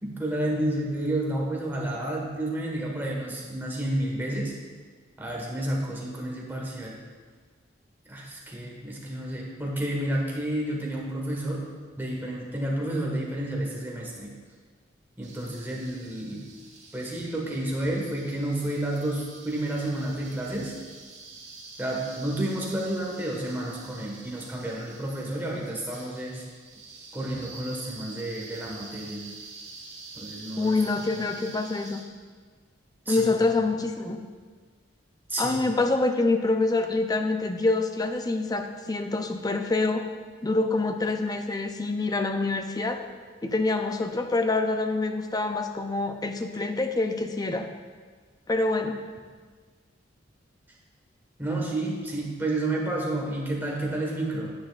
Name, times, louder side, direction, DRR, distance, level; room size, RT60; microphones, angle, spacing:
voice 1, 0.0-4.5 5.2-7.0 8.1-11.6 12.0-14.3 15.2-16.5 16.9-20.7 21.8-26.4 27.1-29.3 30.1-30.8 31.2-31.3 33.1-33.3 35.3-35.6 51.4-54.5, right 1 dB, 10° right, -2 dB, 1.4 m, -30 dB
sound 1, 15.2-32.0, right 3 dB, 35° right, 1.6 m, -47 dB
voice 2, 30.6-32.0 33.1-34.2 35.4-40.0 40.4-43.0 43.4-47.7 48.5-49.0, left 3 dB, 20° left, 6 dB, 0.5 m, -26 dB
10.0 x 9.8 x 2.4 m, 1.5 s
head